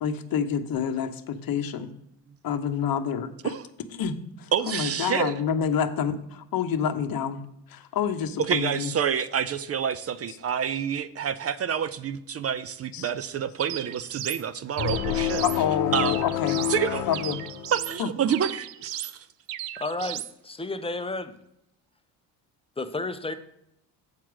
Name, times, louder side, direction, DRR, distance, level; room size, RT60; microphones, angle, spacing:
voice 1, 0.0-1.9 2.4-3.3 4.0-7.4 7.7-8.9 12.9-13.1 15.4-16.6 17.1-17.4 18.0-18.1, left 8 dB, 45° left, 9 dB, 1.0 m, -28 dB
voice 2, 4.5-5.3 8.4-15.4 15.9-16.2 16.7-17.1 17.7-19.3, right 8 dB, 30° right, 14 dB, 0.5 m, -28 dB
sound 1, 13.6-14.4 14.8-15.6 15.9-16.8 17.1-18.0 18.3-19.1 19.5-20.3, right 13 dB, 75° right, 0.6 m, -36 dB
sound 2, 14.8-18.1, left 11 dB, 80° left, 0.8 m, -29 dB
voice 3, 19.8-21.3 22.8-23.3, left 2 dB, 10° left, 9 dB, 0.7 m, -32 dB
7.5 x 4.5 x 6.1 m, 0.80 s
hypercardioid pair, 60°, 48 cm